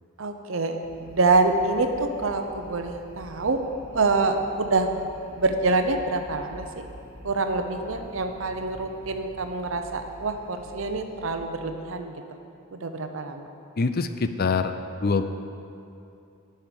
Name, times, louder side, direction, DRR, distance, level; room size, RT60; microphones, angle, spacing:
voice 1, 0.2-3.6 3.9-5.1 5.4-6.8 7.2-12.2 12.7-13.5, right 3 dB, 70° right, 6 dB, 0.7 m, -26 dB
sound 1, 0.8-11.4, right 1 dB, 10° right, 1.0 m, -47 dB
voice 2, 13.8-14.7 15.0-15.2, left 4 dB, 45° left, 9 dB, 0.4 m, -24 dB
10.5 x 5.7 x 6.8 m, 2.7 s
head